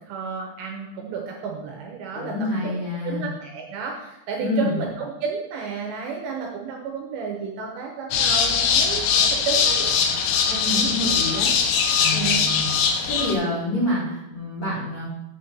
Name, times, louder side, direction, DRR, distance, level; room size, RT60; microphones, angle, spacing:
voice 1, 0.1-2.7 3.0-9.9 10.5-10.9 12.1-12.4, right 5 dB, 75° right, 0 dB, 2.6 m, -31 dB
voice 2, 2.1-3.3 4.4-4.8 10.5-11.5 11.9-12.7 13.1-15.0, left 1 dB, 55° left, -10 dB, 1.8 m, -27 dB
sound 1, 8.1-13.4, left 6 dB, 80° left, 3.2 m, -21 dB
7.3 x 4.3 x 6.6 m, 0.91 s
omnidirectional pair, 5.8 m